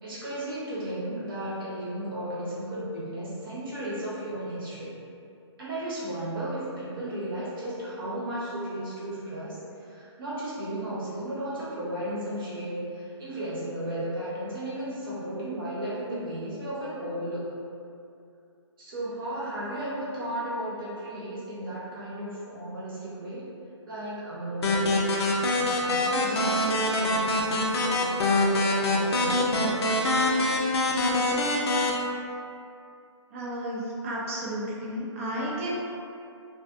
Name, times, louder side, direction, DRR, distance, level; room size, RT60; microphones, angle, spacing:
voice 1, 0.0-4.9 5.6-17.5 18.8-23.5 23.9-25.0 25.6-29.8, right 1 dB, 45° right, -8 dB, 1.0 m, -34 dB
sound 1, 24.6-31.9, left 1 dB, 60° left, 0.4 m, -25 dB
voice 2, 33.3-35.7, right 1 dB, 25° right, -5 dB, 0.4 m, -32 dB
2.4 x 2.3 x 2.5 m, 2.6 s
hypercardioid pair, 160°, 15 cm